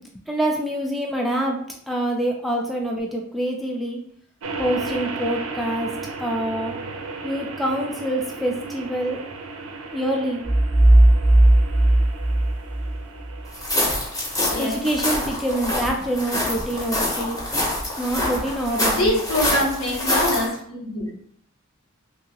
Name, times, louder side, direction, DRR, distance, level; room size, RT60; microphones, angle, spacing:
voice 1, 0.3-1.6 1.9-4.0 4.6-5.9 6.2-6.8 7.2-9.2 9.9-10.4 14.6-17.4 18.0-19.2, right 1 dB, ahead, 0 dB, 0.3 m, -25 dB
sound 1, 4.4-19.7, right 3 dB, 70° right, 0.4 m, -36 dB
sound 2, 10.4-13.3, right 1 dB, 20° right, 0.7 m, -16 dB
sound 3, 13.5-20.5, left 1 dB, 15° left, 0.8 m, -25 dB
voice 2, 14.5-14.8 18.8-21.1, left 1 dB, 80° left, -3 dB, 1.0 m, -24 dB
2.9 x 2.7 x 2.8 m, 0.64 s
head